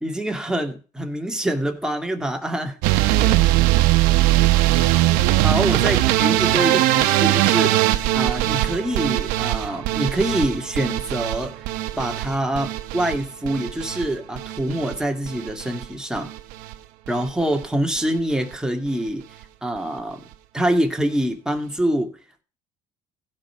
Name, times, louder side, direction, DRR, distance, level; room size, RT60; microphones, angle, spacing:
voice 1, 0.0-2.8 5.4-7.9 8.1-11.7 12.0-16.3 17.1-19.2 19.6-20.2 20.5-22.1, right 1 dB, 5° right, 2.3 m, -25 dB
sound 1, 2.8-15.0 15.3-15.8 16.2-16.7 17.1-17.3 17.6-17.7 18.0-18.1, right 15 dB, 85° right, 0.9 m, -20 dB
16.0 x 5.5 x 4.8 m
cardioid pair, 100°, 14 cm